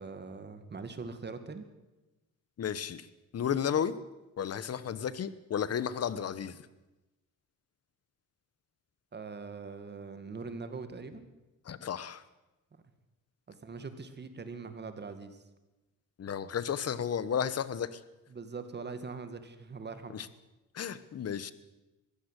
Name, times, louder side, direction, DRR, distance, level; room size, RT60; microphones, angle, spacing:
voice 1, 0.0-1.7 9.1-11.3 13.6-15.4 18.3-20.2, right 4 dB, 35° right, 9 dB, 2.2 m, -42 dB
voice 2, 2.6-3.1 3.3-3.9 4.4-6.6 11.7-12.2 16.2-18.0 20.1-20.3 20.7-21.5, left 8 dB, 50° left, 15 dB, 1.3 m, -33 dB
22.0 x 16.0 x 8.3 m, 1.0 s
cardioid pair, 145°, 32 cm